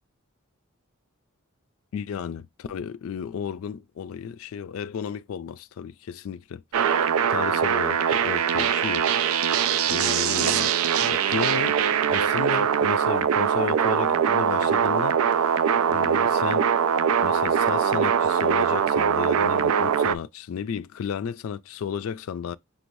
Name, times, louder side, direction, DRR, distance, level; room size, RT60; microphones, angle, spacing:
voice 1, 1.9-6.6 7.3-9.1 9.4-9.6 9.9-11.8 12.1-15.6 15.9-16.7 17.2-22.6, left 7 dB, 75° left, 0.3 m, -33 dB
sound 1, 6.7-20.1, right 8 dB, 85° right, 0.4 m, -22 dB
5.9 x 2.6 x 3.1 m
head